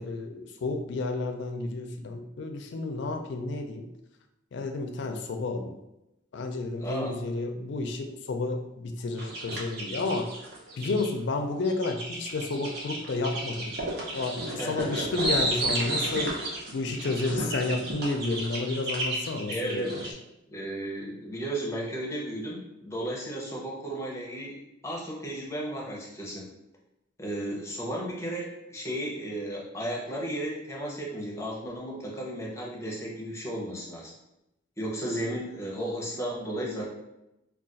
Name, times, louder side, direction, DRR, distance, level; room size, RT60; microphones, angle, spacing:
voice 1, 0.0-3.9 4.5-5.8 6.3-10.3 10.8-13.8 14.1-16.3 16.7-20.0, left 3 dB, 60° left, 5 dB, 0.4 m, -31 dB
voice 2, 6.8-7.1 14.6-15.2 19.5-19.9 20.5-24.6 24.8-26.5 27.2-34.1 34.8-36.8, right 1 dB, 15° left, -3 dB, 0.6 m, -34 dB
sound 1, 9.2-11.1 11.6-20.1, right 1 dB, 50° right, 0.7 m, -32 dB
2.4 x 2.3 x 3.9 m, 0.90 s
head